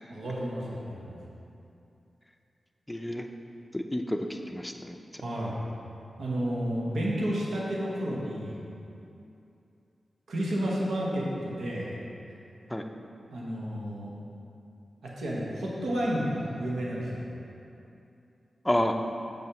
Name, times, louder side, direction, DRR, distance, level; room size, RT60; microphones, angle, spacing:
voice 1, 0.1-1.2 5.2-5.6 6.2-8.6 10.3-11.9 13.3-14.1 15.0-17.3, equal, 90° right, -5 dB, 1.2 m, -31 dB
voice 2, 2.9-3.3 3.7-5.2 12.7-12.9 18.6-18.9, left 1 dB, 10° left, 5 dB, 0.5 m, -30 dB
6.7 x 4.2 x 6.0 m, 2.7 s
cardioid pair, 65°, 0 cm